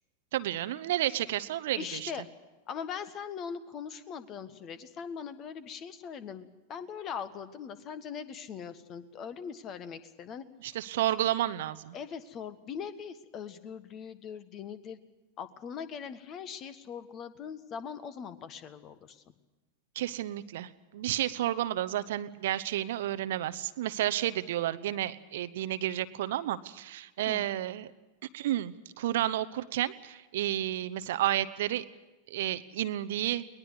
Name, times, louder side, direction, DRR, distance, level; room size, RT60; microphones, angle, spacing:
voice 1, 0.3-2.1 10.6-11.9 19.9-27.9 28.3-31.8 32.3-33.4, right 13 dB, 55° right, 13 dB, 0.9 m, -31 dB
voice 2, 1.7-2.2 2.7-10.4 11.9-15.0 15.4-19.2 27.3-27.5, left 7 dB, 30° left, 13 dB, 1.6 m, -41 dB
22.5 x 20.0 x 8.1 m, 1.1 s
figure-of-eight pair, 90°, 0 cm